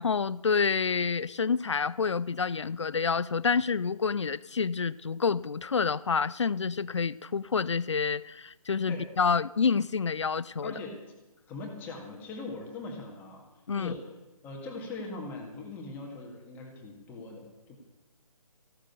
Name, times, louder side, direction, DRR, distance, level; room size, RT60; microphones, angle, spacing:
voice 1, 0.0-10.7 13.7-13.9, left 5 dB, 50° left, 0.5 m, -28 dB
voice 2, 10.6-11.0 11.5-13.5 13.7-14.1 14.4-17.8, left 3 dB, 10° left, 1.8 m, -41 dB
15.0 x 12.0 x 6.9 m
figure-of-eight pair, 145°, 19 cm